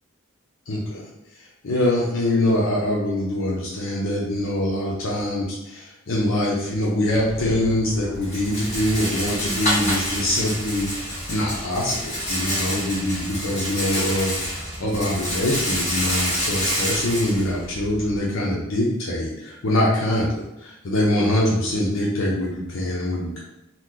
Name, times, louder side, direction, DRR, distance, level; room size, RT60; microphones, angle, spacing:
voice 1, 0.7-1.0 1.6-23.4, left 1 dB, 85° left, -5 dB, 0.7 m, -24 dB
Rattle, 7.1-18.2, equal, 35° left, 1.2 m, -28 dB
2.9 x 2.2 x 3.7 m, 0.90 s
head